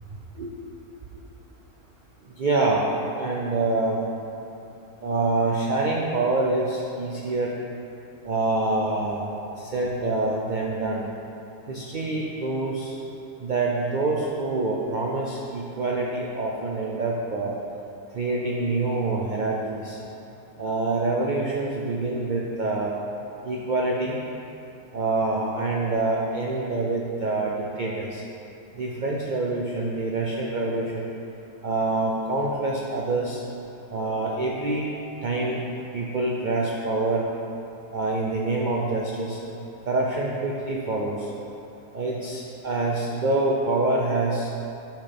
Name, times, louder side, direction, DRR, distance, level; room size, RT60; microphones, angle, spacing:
voice 1, 2.4-4.0 5.0-7.5 8.2-11.1 11.7-12.9 13.4-17.5 18.1-20.0 20.6-22.9 23.4-24.2 24.9-28.2 28.8-31.1 31.6-33.4 33.9-34.9 35.2-35.6 35.9-37.2 37.9-39.4 39.9-41.3 41.9-44.5, right 2 dB, 70° right, -3 dB, 0.4 m, -26 dB
10.0 x 5.7 x 3.5 m, 2.8 s
omnidirectional pair, 1.7 m